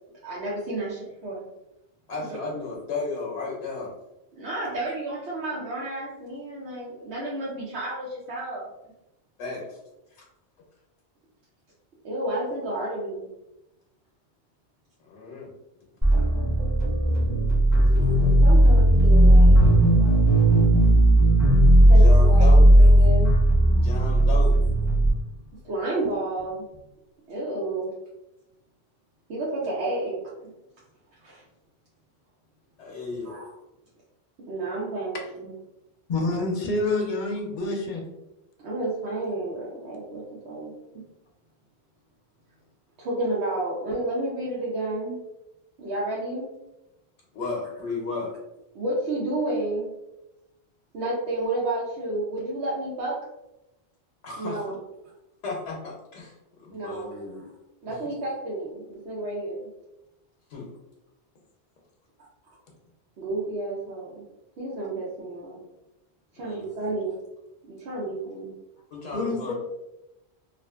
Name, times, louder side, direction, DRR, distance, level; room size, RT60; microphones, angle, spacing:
voice 1, 0.2-1.4 4.3-8.6 12.0-13.3 18.1-19.6 20.0-20.2 21.9-23.3 25.6-26.6 27.3-27.9 29.3-30.5 31.2-31.4 33.2-33.5 34.5-35.5 38.6-41.0 43.0-45.2 45.8-46.5 48.7-49.9 50.9-53.2 54.4-54.8 56.7-57.4 57.8-59.7 63.2-64.2 64.6-65.6 66.3-67.2 67.7-68.6, right 2 dB, 75° right, -6 dB, 0.9 m, -31 dB
voice 2, 2.1-3.9 9.4-9.8 15.0-15.5 21.7-22.7 23.7-24.6 32.8-33.4 47.3-48.3 54.2-54.6 55.4-56.3 56.6-57.5 60.5-60.7 66.4-66.9 68.9-69.5, left 3 dB, 90° left, -3 dB, 0.9 m, -34 dB
sound 1, 16.0-25.1, right 1 dB, 20° right, 0.8 m, -16 dB
voice 3, 36.1-38.0 69.1-69.5, left 2 dB, 55° left, 1 dB, 0.6 m, -27 dB
2.4 x 2.4 x 2.3 m, 0.93 s
omnidirectional pair, 1.1 m